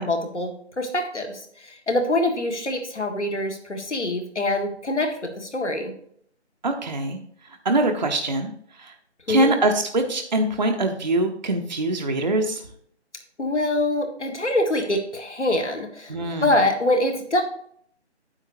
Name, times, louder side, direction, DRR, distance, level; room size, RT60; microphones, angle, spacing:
voice 1, 0.0-5.9 9.3-9.6 13.4-16.2 16.4-17.4, left 1 dB, 75° left, 5 dB, 1.9 m, -24 dB
voice 2, 6.6-7.2 7.6-8.5 8.8-8.9 9.3-12.6 16.1-16.5, right 2 dB, 40° right, 3 dB, 0.8 m, -23 dB
9.8 x 8.0 x 2.7 m, 0.64 s
figure-of-eight pair, 160°, 35 cm